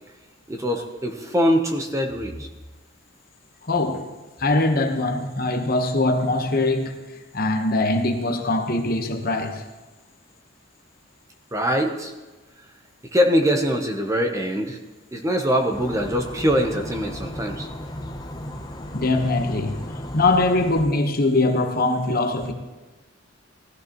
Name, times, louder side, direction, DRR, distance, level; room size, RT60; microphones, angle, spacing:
voice 1, 0.5-2.5 11.5-12.1 13.1-14.8 15.1-17.7, equal, 15° right, 3 dB, 0.8 m, -23 dB
voice 2, 3.6-4.1 4.4-9.6 18.9-19.8 20.1-22.5, left 2 dB, 45° left, 5 dB, 1.1 m, -22 dB
sound 1, 15.7-20.9, left 1 dB, 20° left, 0.7 m, -35 dB
16.5 x 14.0 x 3.0 m, 1.2 s
head